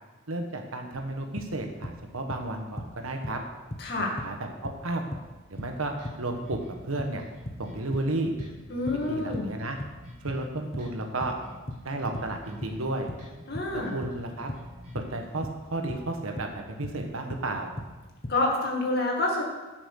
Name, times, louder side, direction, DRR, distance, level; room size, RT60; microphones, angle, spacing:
voice 1, 0.3-3.4 4.0-5.0 5.5-5.9 6.2-7.2 7.6-8.4 9.1-9.8 10.2-11.3 11.8-13.1 13.7-14.5 14.9-17.7, right 2 dB, 75° right, 3 dB, 1.4 m, -33 dB
sound 1, 0.9-2.0 2.3-3.5 3.7-9.5 9.8-17.0 17.3-18.4, left 1 dB, 30° left, 0.9 m, -38 dB
voice 2, 3.8-4.1 8.7-9.5 13.5-13.9 18.3-19.4, left 2 dB, 50° left, -1 dB, 2.2 m, -27 dB
sound 2, 5.5-15.1, left 1 dB, 35° right, 3.9 m, -48 dB
10.5 x 6.1 x 6.5 m, 1.2 s
head